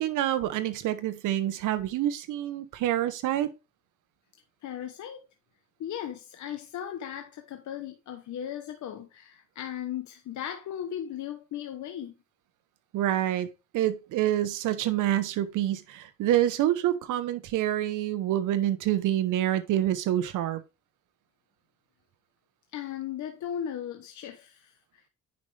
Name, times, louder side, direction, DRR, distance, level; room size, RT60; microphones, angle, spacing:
voice 1, 0.0-3.5 12.9-13.5 13.7-20.6, right 12 dB, 85° right, 1.0 m, -27 dB
voice 2, 4.6-5.2 5.8-12.1 22.7-25.0, left 10 dB, 70° left, 1.0 m, -37 dB
9.6 x 5.5 x 3.3 m
cardioid pair, 90°, 30 cm